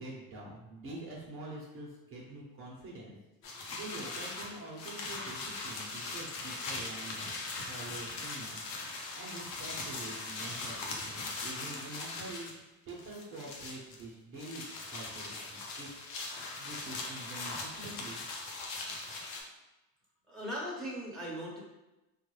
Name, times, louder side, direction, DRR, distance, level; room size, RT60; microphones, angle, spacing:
voice 1, 0.0-3.2 3.7-7.2 7.7-8.6 9.0-12.5 12.9-15.9 16.6-18.2, right 2 dB, 35° right, -4 dB, 0.8 m, -46 dB
sound 1, 3.4-12.6 12.9-14.0 14.4-19.4, left 3 dB, 70° left, 0.9 m, -40 dB
voice 2, 20.3-21.6, equal, ahead, -6 dB, 1.1 m, -39 dB
3.5 x 2.3 x 3.2 m, 1.0 s
supercardioid pair, 115°, 36 cm